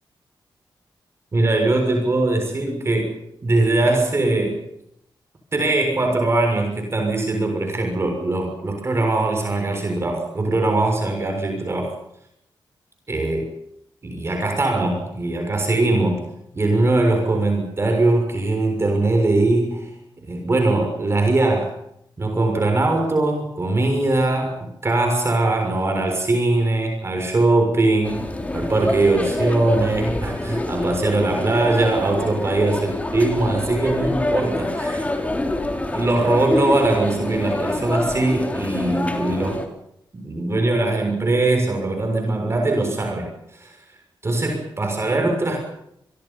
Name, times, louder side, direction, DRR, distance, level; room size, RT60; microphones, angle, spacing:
voice 1, 1.3-3.2 3.4-4.6 5.5-12.0 13.1-13.5 14.0-16.2 16.5-19.9 20.2-21.7 22.2-35.0 35.9-39.6 40.1-43.7 44.2-45.6, right 2 dB, 30° right, 2 dB, 6.4 m, -21 dB
sound 1, 28.0-39.7, left 2 dB, 15° left, 3.9 m, -26 dB
29.5 x 23.0 x 5.7 m, 0.75 s
wide cardioid pair, 135°, 8 cm